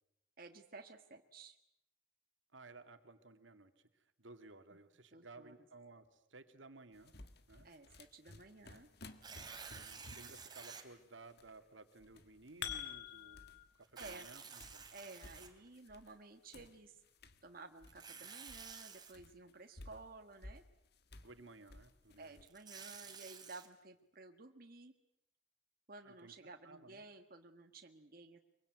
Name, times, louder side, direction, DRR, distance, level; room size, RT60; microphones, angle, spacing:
voice 1, 0.4-1.6 5.1-5.5 7.6-8.9 14.0-14.3 14.9-17.0 17.4-20.6 22.2-24.9 25.9-28.4, right 3 dB, 50° right, 4 dB, 1.6 m, -54 dB
voice 2, 2.5-7.1 7.5-7.7 9.8-13.4 13.8-14.8 21.2-22.4 26.0-26.3 26.6-27.0, right 3 dB, 80° right, 8 dB, 2.2 m, -57 dB
sound 1, 6.9-11.6 11.9-13.7 14.0-16.2 16.5-22.4, left 2 dB, 55° left, 1.7 m, -58 dB
Tearing, 9.1-10.8 11.5-11.6 13.8-16.0 17.8-19.1 22.3-23.7, right 6 dB, 20° right, 3.1 m, -51 dB
sound 2, 12.1-13.6, left 9 dB, 80° left, 3.1 m, -45 dB
24.0 x 23.5 x 9.4 m, 0.80 s
head